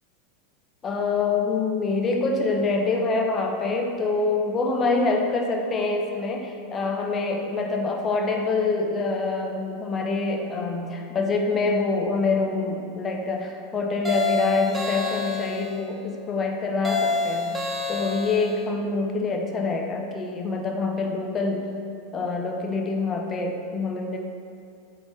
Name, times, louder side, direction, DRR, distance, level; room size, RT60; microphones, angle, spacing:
voice 1, 0.8-21.7 22.1-24.2, left 3 dB, 30° left, 2 dB, 1.0 m, -25 dB
sound 1, 14.0-15.8 16.8-18.6, left 3 dB, 10° right, 1.0 m, -28 dB
7.9 x 4.3 x 4.7 m, 2.4 s
hypercardioid pair, 100°, 0 cm